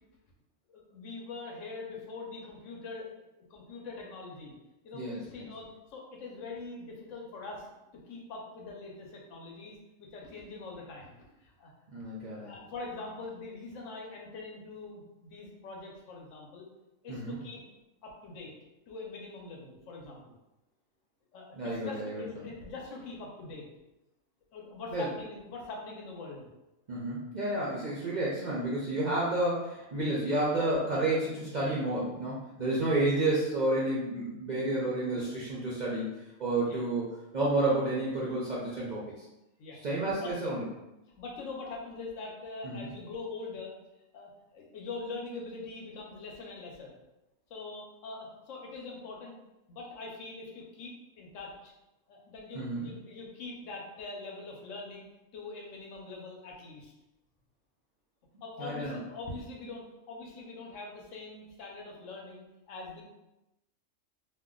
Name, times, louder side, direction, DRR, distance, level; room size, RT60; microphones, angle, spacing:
voice 1, 0.7-3.1 3.5-4.5 4.8-7.7 8.1-12.0 12.4-16.7 17.0-17.6 18.0-18.5 18.9-20.3 21.3-23.7 24.5-26.5 33.2-33.5 35.1-35.4 36.6-36.8 39.6-40.3 41.2-43.7 44.1-46.9 47.5-49.3 49.7-51.7 52.1-55.1 55.3-56.9 58.4-63.0, left 3 dB, 75° left, -1 dB, 1.0 m, -43 dB
voice 2, 4.9-5.5 11.9-12.5 17.1-17.4 21.5-22.4 24.9-25.1 26.9-36.1 36.4-37.1 37.3-39.3 39.8-40.6 42.6-42.7 52.5-52.8 58.6-59.0, right 2 dB, 55° right, -6 dB, 0.5 m, -30 dB
2.5 x 2.2 x 3.6 m, 0.95 s
omnidirectional pair, 1.4 m